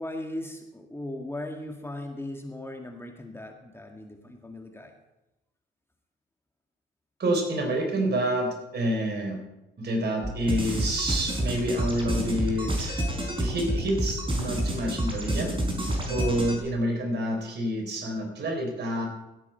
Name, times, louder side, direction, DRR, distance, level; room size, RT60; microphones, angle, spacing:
voice 1, 0.0-4.9, left 1 dB, 10° left, 3 dB, 1.8 m, -38 dB
voice 2, 7.2-9.4 9.8-13.1 13.4-15.5 16.1-19.1, right 1 dB, 55° right, 3 dB, 4.0 m, -28 dB
sound 1, 10.2-16.6, right 1 dB, 25° right, 4.4 m, -29 dB
16.5 x 8.4 x 4.4 m, 0.96 s
supercardioid pair, 60°, 21 cm